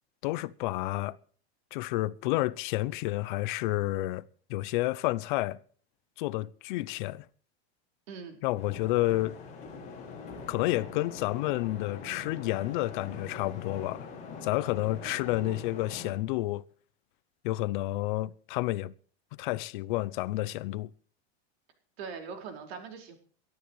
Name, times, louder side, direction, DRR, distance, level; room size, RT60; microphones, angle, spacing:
voice 1, 0.2-1.2 1.7-4.2 4.5-5.6 6.2-7.2 8.4-9.4 10.5-14.1 14.4-16.6 17.4-18.9 19.4-20.9, left 18 dB, 50° left, 0.6 m, -30 dB
voice 2, 8.1-8.4 15.0-15.6 22.0-23.1, right 5 dB, 75° right, 4.9 m, -42 dB
sound 1, 8.5-16.1, left 4 dB, 20° left, 7.1 m, -43 dB
23.5 x 12.5 x 3.1 m
supercardioid pair, 170°, 31 cm